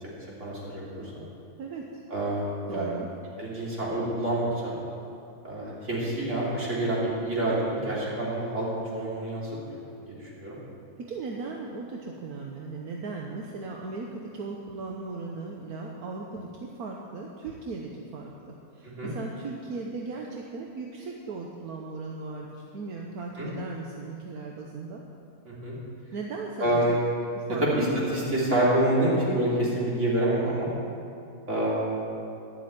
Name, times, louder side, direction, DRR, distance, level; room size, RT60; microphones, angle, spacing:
voice 1, 0.3-1.1 2.1-2.9 3.4-4.7 5.4-8.7 8.9-9.4 9.7-10.6 18.8-19.1 23.4-23.5 25.5-25.8 26.6-27.0 27.6-30.7 31.5-32.0, right 1 dB, 50° right, -7 dB, 3.5 m, -27 dB
voice 2, 2.7-3.1 11.0-25.0 26.1-27.0 27.4-27.9, right 3 dB, 80° right, 0 dB, 1.4 m, -37 dB
11.5 x 7.6 x 8.8 m, 2.6 s
omnidirectional pair, 1.5 m